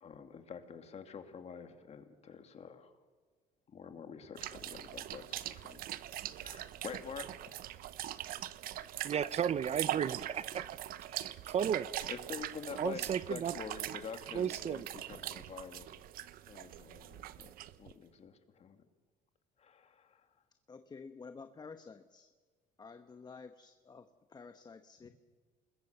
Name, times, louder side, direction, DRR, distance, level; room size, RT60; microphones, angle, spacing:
voice 1, 0.0-2.9 3.7-5.9 6.4-7.3 12.0-16.0 16.5-17.5 17.8-18.8 19.6-20.2, left 6 dB, 45° left, 7 dB, 2.5 m, -47 dB
sound 1, 4.4-17.9, right 13 dB, 70° right, 0.9 m, -42 dB
voice 2, 9.0-10.8 11.1-11.9 12.8-13.5 13.9-14.0 14.3-14.9, right 8 dB, 45° right, 17 dB, 0.7 m, -34 dB
voice 3, 20.7-22.3 22.8-25.1, left 4 dB, 25° left, 9 dB, 1.1 m, -51 dB
27.5 x 21.5 x 6.8 m, 1.5 s
cardioid pair, 100°, 16 cm